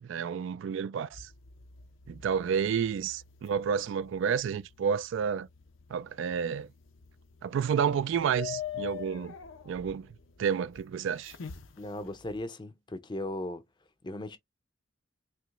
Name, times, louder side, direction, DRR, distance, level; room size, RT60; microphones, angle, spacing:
voice 1, 0.0-1.3 2.1-5.5 5.9-6.7 7.4-9.3 9.7-10.1 10.4-11.3, right 7 dB, 65° right, 0.3 m, -30 dB
sound 1, 1.1-12.4, left 9 dB, 80° left, 0.6 m, -46 dB
voice 2, 11.8-13.6 14.0-14.4, left 1 dB, 25° left, 0.5 m, -37 dB
4.5 x 3.0 x 2.4 m
head